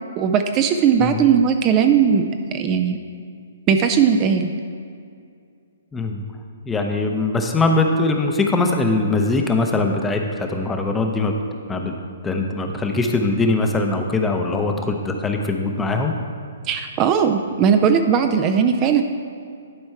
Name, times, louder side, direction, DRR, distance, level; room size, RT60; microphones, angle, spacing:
voice 1, 0.2-3.0 3.7-4.5 16.7-19.0, right 7 dB, 30° right, 6 dB, 0.4 m, -18 dB
voice 2, 5.9-6.2 6.6-11.3 11.7-11.9 12.2-16.1, left 3 dB, 10° left, 3 dB, 0.6 m, -21 dB
11.0 x 4.4 x 4.4 m, 2.3 s
hypercardioid pair, 135°, 0 cm